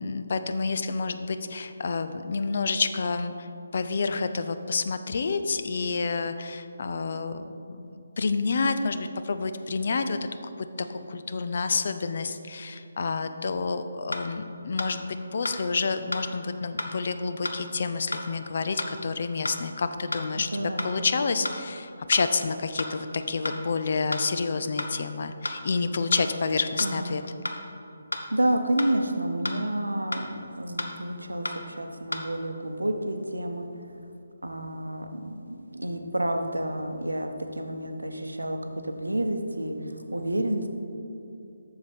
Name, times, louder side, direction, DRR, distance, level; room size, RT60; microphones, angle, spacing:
voice 1, 0.0-3.5 3.7-10.5 10.9-15.1 15.3-27.2, left 4 dB, 45° left, 9 dB, 0.4 m, -29 dB
sound 1, 13.5-13.6 14.1-14.3 14.8-14.9 15.4-15.6 16.1-16.3 16.8-16.9 17.4-17.6 18.1-18.3 18.8-18.9 19.4-19.6 20.1-20.3 20.8-20.9 21.4-21.6 22.1-22.3 22.8-22.9 23.4-23.6 24.1-24.3 24.8-24.9 25.4-25.6 26.1-26.3 26.8-26.9 27.4-27.6 28.1-28.3 28.8-28.9 29.4-29.6 30.1-30.3 30.8-30.9 31.4-31.6 32.1-32.2, left 1 dB, 75° left, 0.8 m, -31 dB
voice 2, 20.4-21.0 26.8-27.1 28.3-33.9 34.4-40.7, right 1 dB, 80° right, 6 dB, 0.8 m, -30 dB
7.7 x 6.7 x 4.3 m, 2.6 s
figure-of-eight pair, 145°, 0 cm